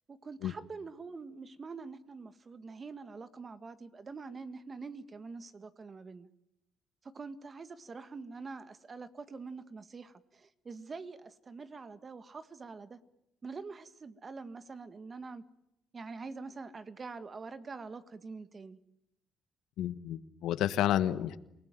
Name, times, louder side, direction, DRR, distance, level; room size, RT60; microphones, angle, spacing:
voice 1, 0.1-6.3 7.0-13.0 13.4-15.4 15.9-18.8, right 4 dB, 35° right, 12 dB, 1.8 m, -45 dB
voice 2, 19.8-21.4, left 12 dB, 85° left, 14 dB, 1.3 m, -30 dB
28.5 x 19.5 x 9.3 m, 0.85 s
cardioid pair, 90°, 0 cm